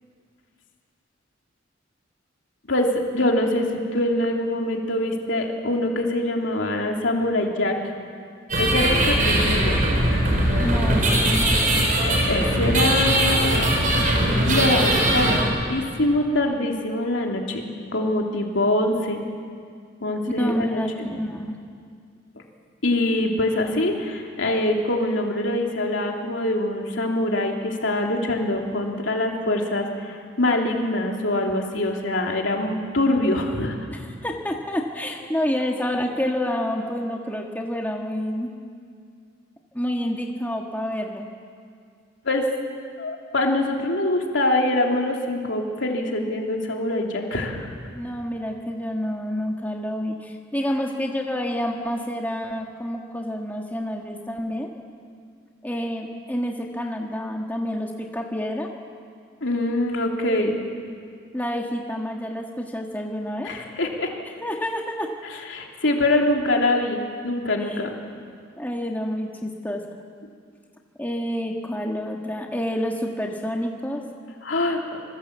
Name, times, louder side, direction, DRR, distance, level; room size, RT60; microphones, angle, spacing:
voice 1, 2.7-7.9 8.6-9.8 12.3-13.6 14.4-19.2 20.0-21.1 22.8-33.7 42.2-42.5 43.0-47.7 59.4-60.6 63.4-64.1 65.5-67.9 74.4-74.8, left 1 dB, 65° left, 1 dB, 3.2 m, -24 dB
sound 1, 8.5-15.4, right 1 dB, 45° right, 5.7 m, -20 dB
voice 2, 10.6-11.8 20.4-21.6 33.9-38.5 39.7-41.3 47.9-54.7 55.6-58.7 61.3-63.5 64.4-65.1 67.7-67.8 68.6-69.8 71.0-74.0, equal, 10° left, 1 dB, 1.6 m, -28 dB
27.0 x 21.0 x 8.2 m, 2.2 s
head